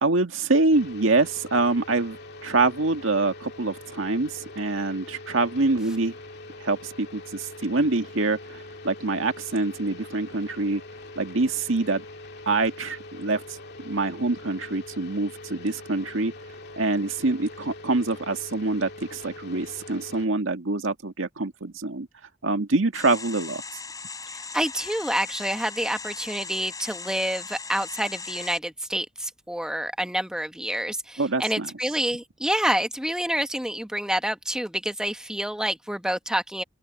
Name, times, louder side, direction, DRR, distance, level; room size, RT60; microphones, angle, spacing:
voice 1, 0.0-6.1 6.6-10.8 11.2-12.0 12.5-16.3 16.8-22.1 22.4-23.6 31.2-31.7, right 3 dB, 80° right, 1.9 m, -25 dB
sound 1, 0.7-20.3, left 2 dB, 55° left, 2.5 m, -43 dB
sound 2, 22.9-28.6, left 4 dB, 20° left, 7.7 m, -38 dB
voice 2, 24.5-36.6, right 1 dB, 5° right, 1.1 m, -28 dB
open air
head